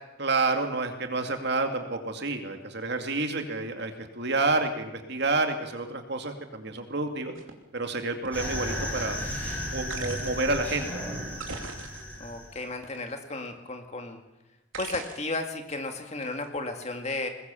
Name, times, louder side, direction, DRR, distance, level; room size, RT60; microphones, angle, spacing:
voice 1, 0.2-7.3 7.7-9.2 9.7-10.9, right 3 dB, 50° right, 5 dB, 2.4 m, -29 dB
sound 1, 7.3-7.5 8.3-8.4 9.9-10.5 11.3-12.3 12.8-13.5 14.7-15.4 16.2-16.5, right 4 dB, 75° right, 2.9 m, -40 dB
sound 2, 8.3-12.6, equal, 5° left, 6.3 m, -34 dB
voice 2, 12.2-14.2 14.8-17.3, left 2 dB, 30° left, 5 dB, 2.1 m, -34 dB
22.0 x 20.5 x 7.1 m, 0.99 s
head